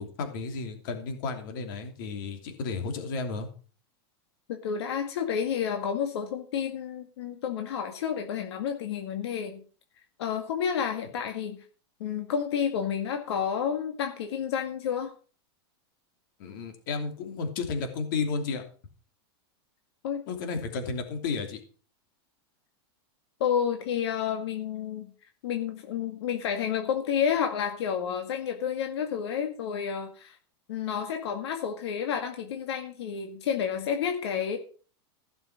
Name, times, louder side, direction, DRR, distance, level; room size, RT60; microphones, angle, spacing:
voice 1, 0.0-3.5 16.4-18.6 20.3-21.6, left 4 dB, 50° left, 5 dB, 2.9 m, -32 dB
voice 2, 4.5-9.6 10.2-11.6 12.0-15.1 20.0-20.2 23.4-25.1 25.4-30.4 30.7-34.6, left 8 dB, 75° left, 4 dB, 2.0 m, -30 dB
15.5 x 6.8 x 5.9 m, 0.40 s
supercardioid pair, 180°, 14 cm